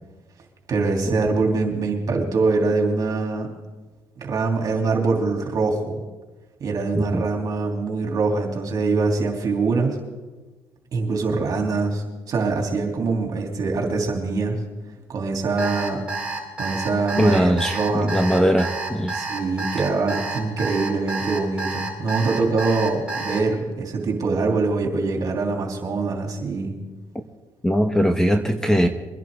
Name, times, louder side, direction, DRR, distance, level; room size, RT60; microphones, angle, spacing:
voice 1, 0.7-3.5 4.2-6.0 6.6-10.0 10.9-14.6 15.1-16.0 16.6-18.2 19.1-26.7, right 3 dB, 50° right, 2 dB, 3.1 m, -23 dB
Alarm, 15.6-23.4, right 3 dB, 15° right, 4.6 m, -29 dB
voice 2, 17.2-19.2 27.6-28.9, equal, 5° left, 7 dB, 1.0 m, -20 dB
23.0 x 11.0 x 3.7 m, 1.2 s
cardioid pair, 95°, 8 cm